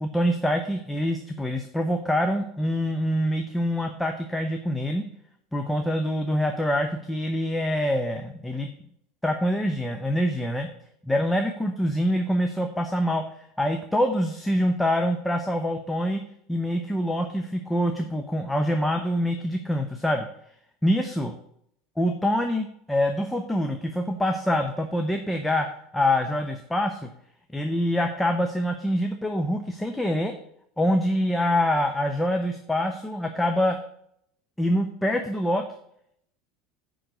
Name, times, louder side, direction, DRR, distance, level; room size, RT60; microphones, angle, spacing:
voice 1, 0.0-5.0 5.5-8.7 9.2-10.7 11.0-16.2 16.5-20.3 20.8-21.3 22.0-25.7 25.9-27.1 27.5-30.3 30.8-33.8 34.6-35.6, equal, 5° left, 5 dB, 0.8 m, -25 dB
10.0 x 3.9 x 6.7 m, 0.70 s
figure-of-eight pair, 75°, 0 cm